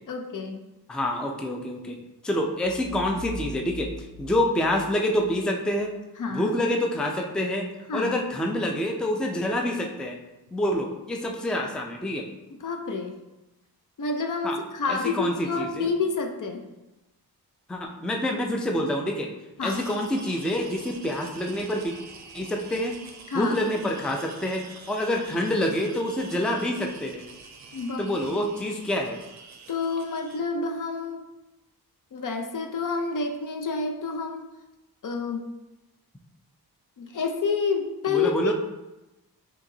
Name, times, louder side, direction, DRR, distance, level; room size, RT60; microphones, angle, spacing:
voice 1, 0.1-0.6 6.2-6.5 7.9-8.2 12.5-13.2 14.0-16.7 19.6-19.9 23.3-23.6 25.1-25.2 27.7-28.1 29.7-31.3 32.1-34.4 35.0-35.4 37.0-38.5, left 4 dB, 55° left, 4 dB, 0.6 m, -29 dB
voice 2, 0.9-2.0 2.2-5.9 6.3-7.7 7.9-10.2 10.5-12.3 14.4-14.6 14.9-15.9 17.7-19.3 19.6-21.9 22.3-23.0 23.3-27.2 28.0-29.2 38.1-38.5, left 1 dB, ahead, 2 dB, 0.4 m, -27 dB
sound 1, 2.6-5.3, left 1 dB, 30° left, 1.4 m, -41 dB
sound 2, 19.6-30.4, right 4 dB, 45° right, 0.6 m, -46 dB
5.8 x 2.9 x 2.7 m, 1.0 s
cardioid pair, 85°, 38 cm